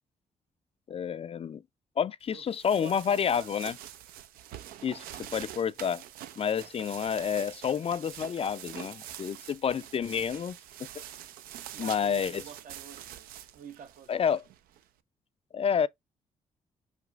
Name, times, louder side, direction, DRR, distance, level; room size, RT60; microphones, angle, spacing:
voice 1, 0.9-1.6 2.0-3.8 4.8-5.0 5.3-6.0 6.4-10.6 10.9-11.0 11.8-12.4 14.1-14.4 15.5-15.9, left 7 dB, 40° left, 0.4 m, -29 dB
sound 1, 2.3-14.8, right 11 dB, 80° right, 0.5 m, -45 dB
voice 2, 2.8-3.6 11.7-14.3, right 7 dB, 65° right, 1.0 m, -48 dB
5.0 x 4.5 x 2.4 m
supercardioid pair, 55°, 15 cm